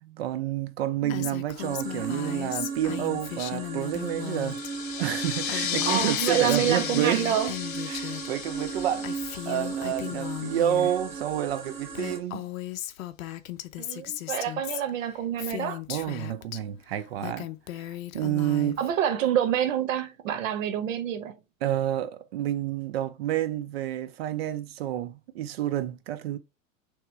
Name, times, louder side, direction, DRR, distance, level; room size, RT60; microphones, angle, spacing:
voice 1, 0.0-4.6 5.0-7.3 7.9-9.1 9.4-12.5 15.9-17.5 17.8-18.8 21.6-26.4, right 12 dB, 50° right, 0.4 m, -29 dB
Female speech woman speaking, 1.1-4.7 5.0-8.3 8.6-11.0 11.6-11.7 11.9-16.6 17.0-18.9, left 14 dB, 85° left, 0.7 m, -37 dB
sound 1, 1.6-12.2, right 5 dB, 15° right, 0.7 m, -37 dB
sound 2, 4.1-10.3, left 9 dB, 40° left, 0.7 m, -34 dB
voice 2, 5.9-7.6 13.8-15.8 18.8-21.4, right 9 dB, 70° right, 0.9 m, -27 dB
3.4 x 3.0 x 4.5 m
supercardioid pair, 170°, 40 cm